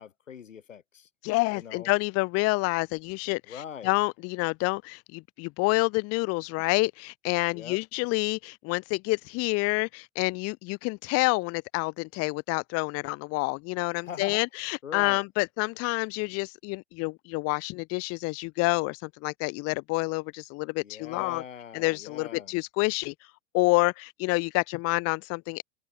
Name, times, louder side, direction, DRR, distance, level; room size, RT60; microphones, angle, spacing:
voice 1, 0.0-1.1 1.5-1.9 3.5-3.9 7.5-7.8 14.0-14.4 14.8-15.2 20.8-22.6, left 8 dB, 85° left, 7.3 m, -42 dB
voice 2, 1.2-21.4 21.7-23.1 23.5-25.6, left 25 dB, 40° left, 0.7 m, -28 dB
hypercardioid pair, 95°, 37 cm